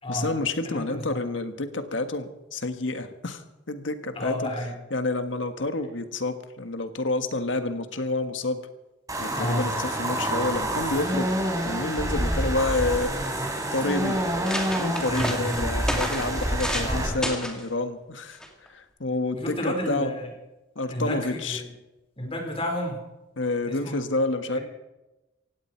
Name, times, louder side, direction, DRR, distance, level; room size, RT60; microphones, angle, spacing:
voice 1, 0.1-4.5 4.9-8.6 9.2-11.3 11.6-13.3 13.7-14.2 14.8-18.4 18.7-20.1 20.7-21.6 23.4-24.6, left 2 dB, 75° left, 8 dB, 1.6 m, -29 dB
voice 2, 0.6-1.2 4.1-4.7 9.3-9.7 15.1-15.6 16.7-17.2 19.3-20.3 20.9-21.6 22.2-23.0 23.7-23.9, left 1 dB, 30° left, 2 dB, 4.5 m, -31 dB
sound 1, 9.1-17.1, right 1 dB, 20° right, 3.8 m, -27 dB
sound 2, 12.8-13.3 13.9-14.0 14.2-16.9 17.2-17.6 18.4-18.7, equal, 5° left, 2.3 m, -32 dB
17.5 x 16.5 x 4.6 m, 1.0 s
head